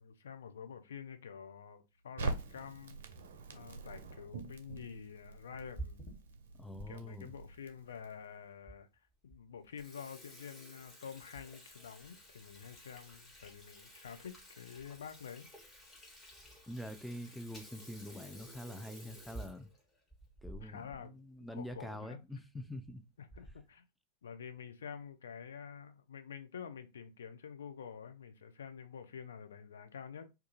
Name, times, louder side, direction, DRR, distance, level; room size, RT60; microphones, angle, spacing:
voice 1, 0.0-3.0 3.5-6.1 6.9-8.9 9.2-15.5 20.5-21.1 21.4-22.2 23.2-23.8 24.2-30.3, left 7 dB, 65° left, 0.4 m, -48 dB
Crackle, 2.2-8.3, right 3 dB, 60° right, 0.4 m, -44 dB
Water tap faucet / Sink (filling or washing), 5.7-6.9 7.4-7.5 8.2-8.3 8.7-8.8 9.1-9.3 9.6-21.0 21.3-21.4 21.7-21.8 22.6-22.9 23.3-23.7, right 1 dB, 20° left, 1.0 m, -52 dB
voice 2, 6.6-7.3 16.7-19.7 20.4-23.1, left 1 dB, ahead, 0.4 m, -45 dB
2.3 x 2.3 x 2.9 m
figure-of-eight pair, 90°, 0 cm